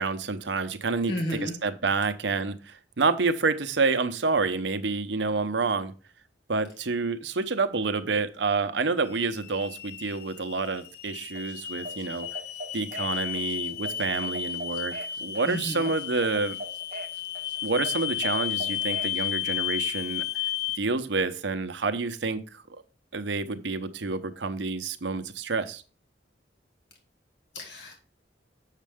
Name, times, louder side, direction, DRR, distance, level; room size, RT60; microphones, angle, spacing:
voice 1, 0.0-5.9 6.5-12.3 12.7-14.9 15.2-16.6 17.6-20.2 20.8-22.6 23.1-25.8, right 4 dB, 80° right, 10 dB, 0.8 m, -28 dB
voice 2, 1.1-1.5 15.4-15.9 27.5-27.9, left 1 dB, 70° left, 1 dB, 1.8 m, -32 dB
sound 1, 9.1-20.8, left 12 dB, 55° left, 0.6 m, -33 dB
sound 2, 11.4-19.2, right 2 dB, 45° right, 0.9 m, -42 dB
7.4 x 6.5 x 3.5 m, 0.36 s
head